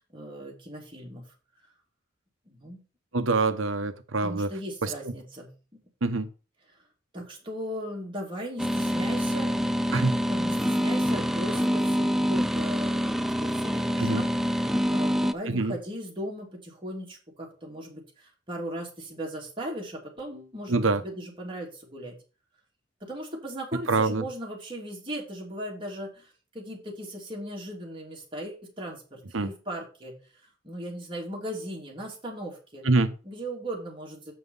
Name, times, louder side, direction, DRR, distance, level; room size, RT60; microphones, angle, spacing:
voice 1, 0.1-1.3 2.5-2.8 4.2-6.2 7.1-9.5 10.3-22.1 23.0-30.2 30.6-32.9 33.2-34.3, right 1 dB, 25° right, 3.0 m, -38 dB
voice 2, 3.1-4.5 4.8-4.9 6.0-6.3 9.9-10.1 14.0-14.2 15.5-15.7 20.7-21.0 23.9-24.2 29.3-29.5 32.8-33.1, right 3 dB, 85° right, 0.9 m, -25 dB
sound 1, 8.6-15.3, equal, ahead, 0.3 m, -26 dB
7.6 x 5.8 x 5.4 m
head